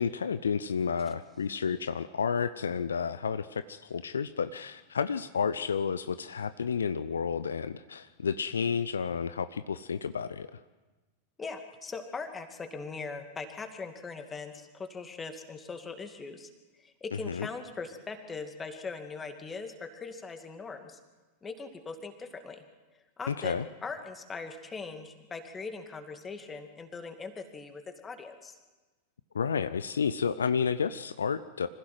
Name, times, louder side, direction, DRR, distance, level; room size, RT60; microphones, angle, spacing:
voice 1, 0.0-10.6 17.3-17.5 23.3-23.7 29.3-31.7, left 6 dB, 70° left, 13 dB, 0.6 m, -31 dB
voice 2, 11.4-16.5 16.8-21.0 21.4-22.6 23.2-28.6, left 4 dB, 15° left, 6 dB, 2.4 m, -40 dB
25.5 x 15.5 x 7.8 m, 1.2 s
figure-of-eight pair, 90°, 0 cm